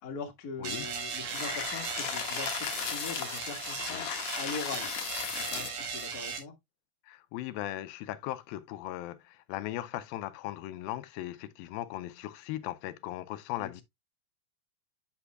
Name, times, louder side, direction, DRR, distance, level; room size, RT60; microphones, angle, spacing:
voice 1, 0.0-4.1 4.4-4.9 5.2-6.5 13.6-13.8, left 5 dB, 45° left, 1.3 m, -41 dB
sound 1, 0.6-6.4, right 6 dB, 70° right, 3.4 m, -37 dB
sound 2, 1.3-5.9, left 9 dB, 65° left, 1.8 m, -36 dB
voice 2, 7.1-13.8, left 14 dB, 85° left, 2.4 m, -38 dB
9.6 x 6.4 x 2.2 m
omnidirectional pair, 4.1 m